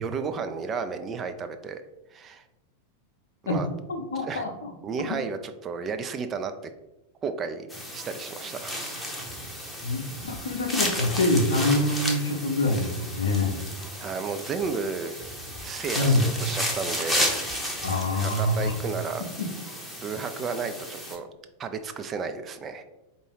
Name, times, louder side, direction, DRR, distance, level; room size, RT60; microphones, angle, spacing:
voice 1, 0.0-1.8 2.1-2.4 3.5-3.7 4.2-4.4 4.8-6.5 7.2-7.7 7.9-8.8 14.0-15.1 15.6-17.4 18.1-19.2 20.0-21.3 21.6-22.8, right 5 dB, 25° right, 8 dB, 0.3 m, -32 dB
voice 2, 3.9-4.7 5.1-5.2 9.8-13.6 15.9-16.3 17.8-18.7 19.4-19.5, left 2 dB, 65° left, 3 dB, 0.7 m, -25 dB
sound 1, 7.7-21.2, equal, 5° left, 0.7 m, -33 dB
4.4 x 2.6 x 3.3 m, 0.97 s
figure-of-eight pair, 90°, 0 cm